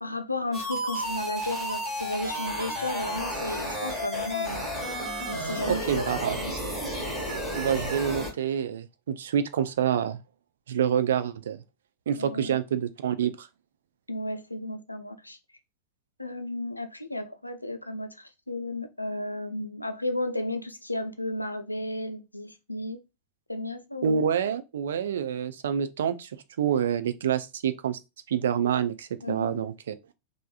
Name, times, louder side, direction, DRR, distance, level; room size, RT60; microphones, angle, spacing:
voice 1, 0.0-4.7 5.3-6.5 12.2-12.6 14.1-15.4 16.2-23.0 23.5-24.2 29.2-29.6, left 1 dB, 85° left, 0.3 m, -34 dB
sound 1, 0.5-8.3, equal, 5° right, 1.2 m, -32 dB
voice 2, 5.7-6.4 7.6-10.2 10.7-11.6 12.1-13.5 24.0-26.3 26.6-28.0 28.3-29.9, right 8 dB, 60° right, 0.3 m, -27 dB
3.3 x 2.5 x 2.3 m
figure-of-eight pair, 90°, 0 cm